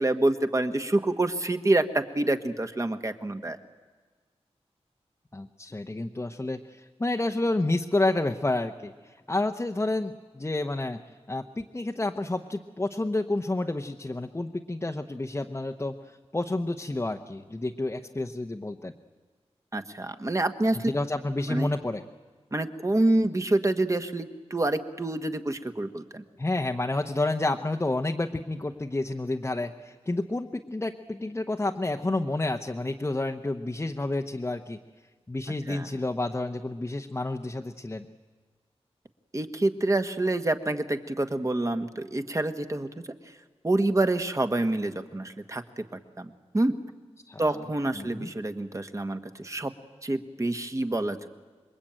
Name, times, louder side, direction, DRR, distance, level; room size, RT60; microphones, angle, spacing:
voice 1, 0.0-3.6 19.7-20.9 21.5-21.7 22.5-26.2 35.7-35.9 39.3-42.9 43.6-45.8 46.2-46.7 47.4-49.7 50.0-51.3, right 2 dB, 30° right, 8 dB, 1.5 m, -27 dB
voice 2, 5.3-11.0 11.3-18.9 20.8-22.0 26.4-34.8 35.3-38.1 47.3-47.6 48.0-48.3, left 2 dB, 25° left, 3 dB, 0.9 m, -30 dB
26.5 x 22.5 x 8.9 m, 1.5 s
wide cardioid pair, 100°, 11 cm